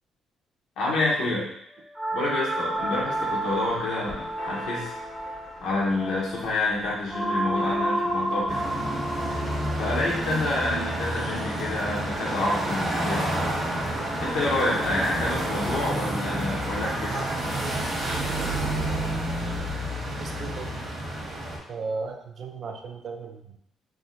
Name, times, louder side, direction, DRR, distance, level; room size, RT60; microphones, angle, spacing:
voice 1, 0.8-1.5 2.1-4.9 5.6-8.6 9.7-13.3 14.2-17.3, left 2 dB, 85° left, -5 dB, 1.0 m, -28 dB
sound 1, 1.9-12.1, right 1 dB, 5° right, 0.5 m, -31 dB
Church bell, 2.7-19.7, left 2 dB, 60° left, 0.7 m, -44 dB
sound 2, 8.5-21.6, right 1 dB, 45° right, 1.1 m, -29 dB
voice 2, 20.0-20.7 21.7-23.6, right 4 dB, 60° right, 4 dB, 0.4 m, -36 dB
3.6 x 2.1 x 2.6 m, 0.71 s
cardioid pair, 90°, 0 cm